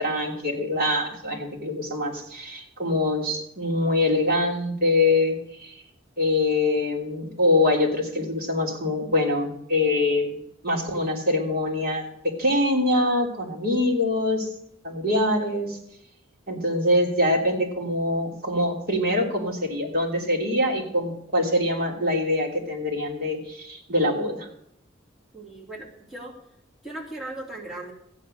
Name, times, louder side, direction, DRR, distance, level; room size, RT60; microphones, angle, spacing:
voice 1, 0.0-5.7 6.2-14.5 14.8-15.8 16.5-24.5, left 1 dB, 50° right, -1 dB, 3.0 m, -24 dB
voice 2, 25.3-26.3 26.8-27.9, right 2 dB, ahead, -5 dB, 2.9 m, -37 dB
14.5 x 9.3 x 6.6 m, 0.75 s
head